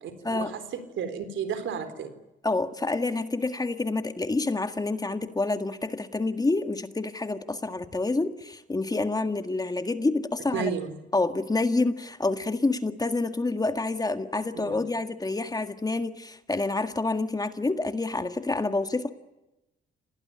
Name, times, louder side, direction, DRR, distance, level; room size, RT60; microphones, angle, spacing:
voice 1, 0.3-2.1 10.5-10.9 14.5-14.8, right 6 dB, 75° right, 10 dB, 4.0 m, -32 dB
voice 2, 2.4-10.7 11.1-19.1, left 3 dB, 20° left, 8 dB, 1.8 m, -28 dB
27.0 x 19.0 x 9.9 m, 0.97 s
cardioid pair, 90°, 20 cm